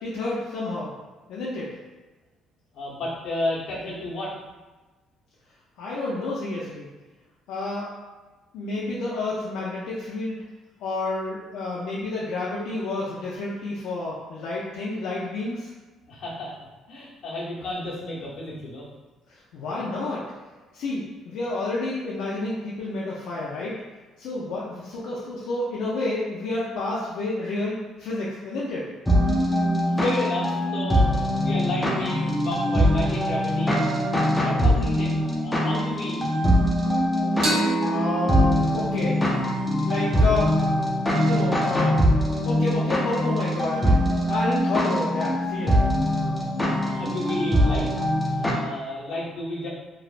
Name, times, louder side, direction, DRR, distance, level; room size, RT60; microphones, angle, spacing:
voice 1, 0.0-0.9 1.3-1.7 5.8-6.9 7.5-7.9 8.5-10.4 10.8-15.7 19.5-20.2 20.7-23.7 24.2-28.9 37.8-39.2 39.8-40.6 41.2-42.0 42.5-44.0 44.3-45.9, left 2 dB, 75° left, -6 dB, 0.4 m, -29 dB
voice 2, 2.7-4.3 16.1-16.5 16.9-18.8 29.8-33.8 34.3-36.3 46.8-47.9 48.5-49.7, left 2 dB, 55° left, -6 dB, 0.8 m, -32 dB
sound 1, 29.1-48.5, equal, 5° left, 0.3 m, -22 dB
sound 2, 37.4-40.8, right 3 dB, 65° right, 0.8 m, -30 dB
3.1 x 2.0 x 2.4 m, 1.3 s
cardioid pair, 170°, 0 cm